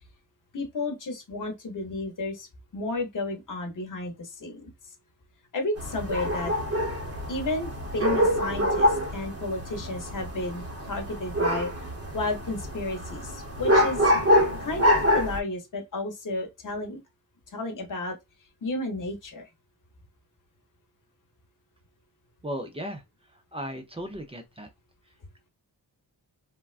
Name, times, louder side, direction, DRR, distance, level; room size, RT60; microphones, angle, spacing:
voice 1, 0.5-2.5 2.7-4.7 5.5-6.5 7.3-14.1 14.6-17.0 17.5-18.2 18.6-19.4, left 2 dB, 45° left, 0.9 m, -32 dB
sound 1, 5.8-15.4, equal, 35° right, 0.8 m, -26 dB
voice 2, 22.4-23.0 23.5-24.7, equal, 15° right, 0.4 m, -35 dB
3.5 x 2.2 x 2.4 m
wide cardioid pair, 175°, 43 cm